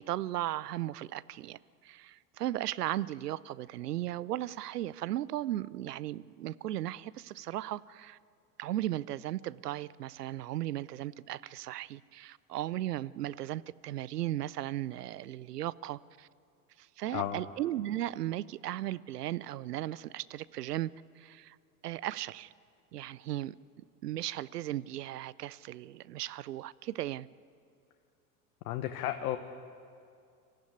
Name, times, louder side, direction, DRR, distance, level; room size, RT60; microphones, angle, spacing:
voice 1, 0.0-8.2 8.6-16.3 16.8-20.9 21.2-21.6 21.8-22.5 22.9-23.5 24.0-27.3, right 14 dB, 80° right, 20 dB, 0.6 m, -36 dB
voice 2, 28.6-29.4, left 12 dB, 65° left, 7 dB, 1.2 m, -33 dB
25.0 x 14.5 x 9.6 m, 2.3 s
hypercardioid pair, 75°, 46 cm